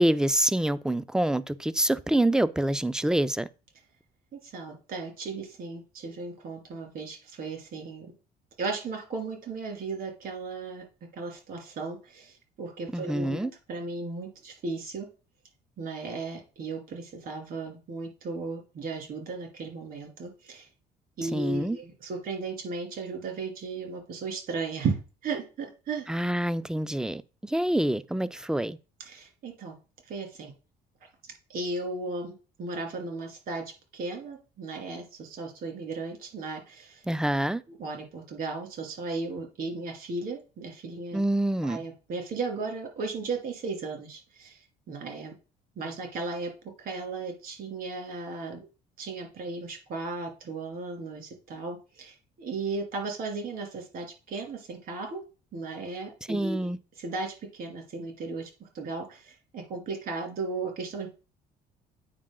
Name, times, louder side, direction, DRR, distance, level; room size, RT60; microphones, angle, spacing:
voice 1, 0.0-3.5 12.9-13.5 21.2-21.8 26.1-28.8 37.1-37.6 41.1-41.8 56.3-56.8, right 1 dB, 5° right, 0.4 m, -26 dB
voice 2, 4.4-8.1 8.6-10.8 11.1-15.1 15.8-20.7 21.2-26.1 29.1-29.8 30.1-30.5 31.5-33.6 33.9-37.0 37.8-41.2 41.6-44.6 44.9-45.3 45.8-46.5 46.8-48.7 49.0-55.2 55.5-56.7 57.0-61.1, right 3 dB, 60° right, 2.7 m, -35 dB
8.8 x 4.6 x 3.8 m
cardioid pair, 110°, 17 cm